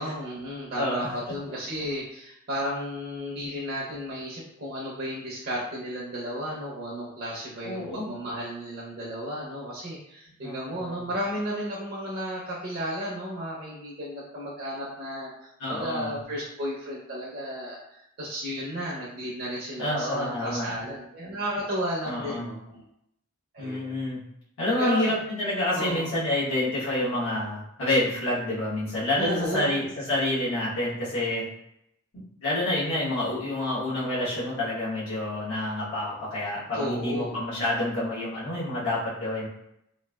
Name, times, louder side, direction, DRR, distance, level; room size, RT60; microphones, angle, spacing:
voice 1, 0.0-22.9 23.5-24.0 24.8-25.1 25.7-26.1 29.2-29.7 36.7-37.4, equal, 50° right, -6 dB, 0.6 m, -33 dB
voice 2, 0.7-1.1 7.6-8.1 10.4-11.1 15.6-16.1 19.8-20.7 22.0-22.4 23.6-24.2 24.6-31.4 32.1-39.5, left 1 dB, 80° left, -9 dB, 1.1 m, -28 dB
3.0 x 2.4 x 2.2 m, 0.79 s
head